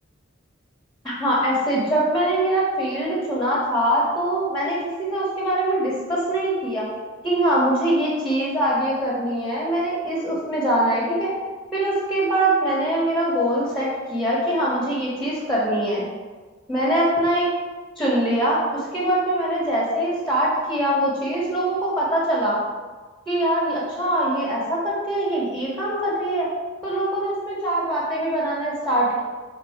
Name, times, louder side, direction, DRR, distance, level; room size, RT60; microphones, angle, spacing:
voice 1, 1.0-6.8 7.2-11.3 11.7-16.1 16.7-17.4 18.0-22.6 23.3-26.5 26.8-29.2, right 1 dB, ahead, -6 dB, 1.3 m, -23 dB
5.9 x 3.7 x 4.9 m, 1.4 s
head